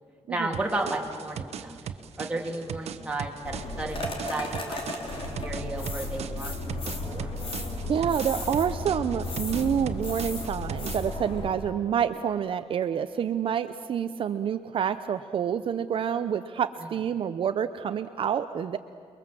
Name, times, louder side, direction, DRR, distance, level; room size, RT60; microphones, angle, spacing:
voice 1, 0.3-1.8 2.2-6.8 7.0-7.3, right 2 dB, 10° right, 0 dB, 2.6 m, -33 dB
sound 1, 0.5-11.2, right 8 dB, 85° right, 1.1 m, -39 dB
sound 2, 3.4-11.5, left 2 dB, 55° left, 3.9 m, -34 dB
voice 2, 7.9-18.8, right 8 dB, 55° right, 9 dB, 0.7 m, -28 dB
28.5 x 22.0 x 7.6 m, 2.2 s
wide cardioid pair, 160°, 11 cm